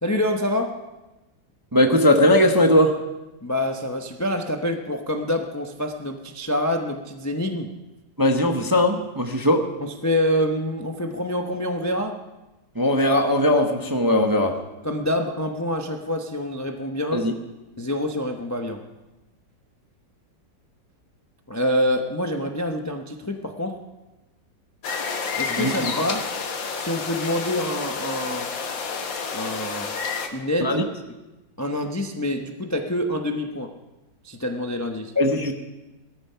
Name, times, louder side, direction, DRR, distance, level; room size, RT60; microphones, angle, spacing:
voice 1, 0.0-0.8 3.4-7.7 9.8-12.2 14.8-17.2 17.8-18.8 21.5-23.8 25.4-26.3 26.7-28.5 29.3-29.9 30.3-30.8 31.6-33.7 34.2-35.1, left 1 dB, 20° left, 4 dB, 0.4 m, -26 dB
voice 2, 1.7-3.0 8.2-9.7 12.8-14.6 17.1-17.3 25.5-25.9 30.6-30.8 35.2-35.5, left 1 dB, 20° right, 4 dB, 0.6 m, -19 dB
sound 1, 24.8-30.3, left 5 dB, 75° left, 2.1 m, -29 dB
17.5 x 14.0 x 5.7 m, 1.1 s
omnidirectional pair, 2.1 m